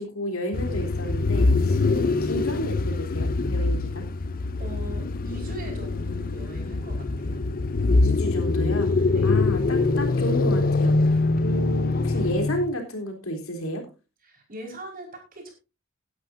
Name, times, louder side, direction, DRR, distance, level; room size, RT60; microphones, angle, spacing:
voice 1, 0.0-4.1 8.0-13.8, equal, 75° left, 3 dB, 3.7 m, -32 dB
sound 1, 0.5-12.7, left 3 dB, 45° left, 0.6 m, -24 dB
voice 2, 4.6-7.4 9.1-9.4 14.2-15.5, right 1 dB, 45° right, 2 dB, 5.0 m, -40 dB
16.5 x 11.5 x 2.7 m, 0.29 s
head